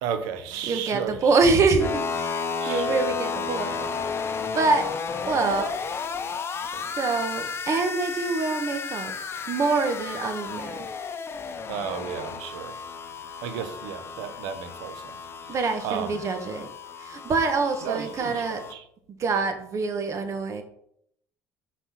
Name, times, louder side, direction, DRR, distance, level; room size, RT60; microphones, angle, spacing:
voice 1, 0.0-1.3 2.6-3.1 5.5-5.7 11.7-12.8 13.4-15.2 15.4-15.5 15.8-16.2 17.8-18.8, right 8 dB, 85° right, 0.7 m, -33 dB
voice 2, 0.7-3.8 4.5-4.9 5.2-5.7 6.7-9.1 9.5-10.8 15.5-16.7 17.0-18.6 19.2-20.6, right 4 dB, 50° right, 1.3 m, -25 dB
sound 1, 1.8-18.7, left 5 dB, 40° left, 0.7 m, -33 dB
5.8 x 4.2 x 5.7 m
supercardioid pair, 80°, 6 cm